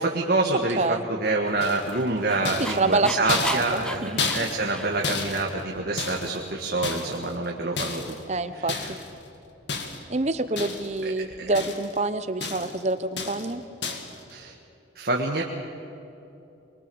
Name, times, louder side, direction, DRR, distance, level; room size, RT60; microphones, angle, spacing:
voice 1, 0.0-0.8 1.1-8.1 8.5-8.9 11.0-11.1 14.3-14.5 14.9-15.4, right 2 dB, 50° right, 0 dB, 1.7 m, -27 dB
voice 2, 0.8-1.1 2.8-4.2 8.3-8.7 10.1-13.6, right 3 dB, 35° right, 12 dB, 0.8 m, -27 dB
Dog, 1.4-5.2, equal, 5° left, 0.8 m, -36 dB
sound 1, 1.6-2.1 2.5-6.5 6.8-7.4 7.8-8.2 8.7-9.1 9.7-10.2 10.6-11.0 11.3-12.0 12.4-12.8 13.2-13.5 13.8-14.2, left 4 dB, 65° left, 2.1 m, -32 dB
23.0 x 21.5 x 7.1 m, 2.9 s
head